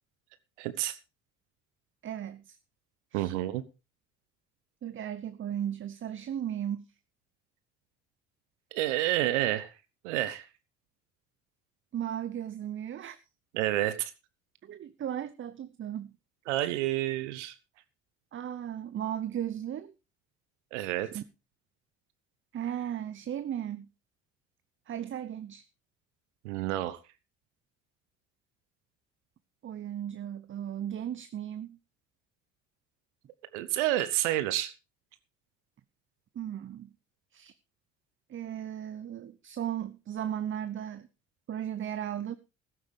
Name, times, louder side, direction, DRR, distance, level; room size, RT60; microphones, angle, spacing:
voice 1, 0.6-1.0 3.1-3.6 8.7-9.7 10.0-10.5 13.5-14.1 16.5-17.6 20.7-21.1 26.4-27.0 33.5-34.7, right 14 dB, 70° right, 0.9 m, -29 dB
voice 2, 2.0-2.6 3.1-3.3 4.8-6.9 11.9-13.2 14.6-16.1 18.3-19.9 21.1-21.2 22.5-23.9 24.9-25.6 29.6-31.8 36.3-36.9 37.3-37.5 38.3-41.1 41.5-42.3, right 10 dB, 35° right, 0.7 m, -36 dB
14.5 x 12.5 x 3.4 m
figure-of-eight pair, 50°, 37 cm